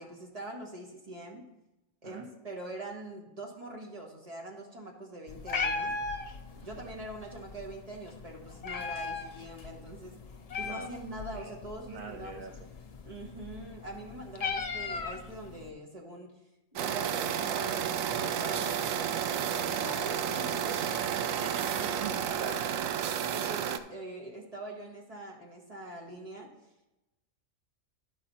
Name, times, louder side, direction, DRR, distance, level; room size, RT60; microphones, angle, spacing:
voice 1, 0.0-1.4 2.0-5.9 6.6-10.2 10.6-12.5 13.0-16.3 16.7-20.8 21.8-22.2 23.3-26.5, right 1 dB, 30° right, -1 dB, 1.5 m, -43 dB
Meow, 5.3-15.7, left 4 dB, 55° left, 0.4 m, -38 dB
voice 2, 11.9-12.5 20.7-21.1 21.4-22.6, right 6 dB, 55° right, 3 dB, 0.7 m, -43 dB
sound 1, 16.8-23.8, right 8 dB, 80° right, 1.0 m, -31 dB
12.5 x 4.8 x 4.2 m, 1.0 s
omnidirectional pair, 1.4 m